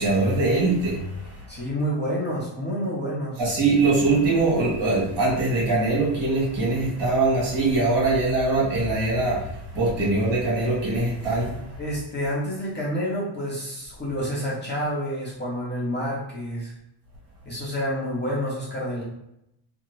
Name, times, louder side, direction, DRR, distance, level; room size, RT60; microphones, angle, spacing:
voice 1, 0.0-1.5 3.4-11.8, right 2 dB, 55° right, -4 dB, 1.4 m, -22 dB
voice 2, 1.5-3.4 11.8-16.7 17.4-19.0, equal, 20° left, -7 dB, 0.7 m, -28 dB
2.5 x 2.4 x 3.1 m, 0.81 s
cardioid pair, 145°, 50 cm